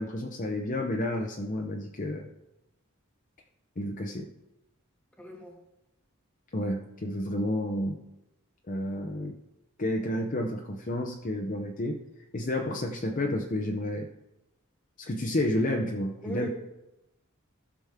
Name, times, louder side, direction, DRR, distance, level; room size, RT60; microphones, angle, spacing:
voice 1, 0.0-2.3 3.8-4.3 6.5-8.0 8.7-9.3 9.8-12.0 12.3-14.1 15.0-16.5, left 1 dB, 40° left, 2 dB, 0.7 m, -30 dB
voice 2, 5.2-5.6 16.2-16.5, right 2 dB, 5° left, 0 dB, 1.8 m, -38 dB
15.0 x 6.1 x 3.6 m, 0.91 s
head